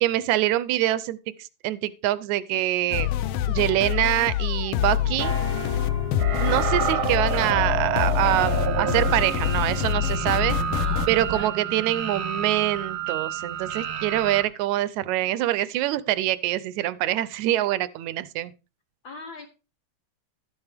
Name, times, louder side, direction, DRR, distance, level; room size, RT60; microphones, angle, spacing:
voice 1, 0.0-3.1 3.5-5.3 6.4-8.5 8.8-10.6 11.1-18.5, right 14 dB, 80° right, 1.9 m, -25 dB
sound 1, 2.9-11.1, left 12 dB, 90° left, 1.3 m, -26 dB
sound 2, 4.7-11.4, right 1 dB, 5° left, 1.2 m, -36 dB
sound 3, 6.2-14.4, right 7 dB, 60° right, 1.5 m, -29 dB
voice 2, 10.7-11.5 19.0-19.5, left 3 dB, 60° left, 1.3 m, -41 dB
12.0 x 8.1 x 3.4 m
omnidirectional pair, 3.3 m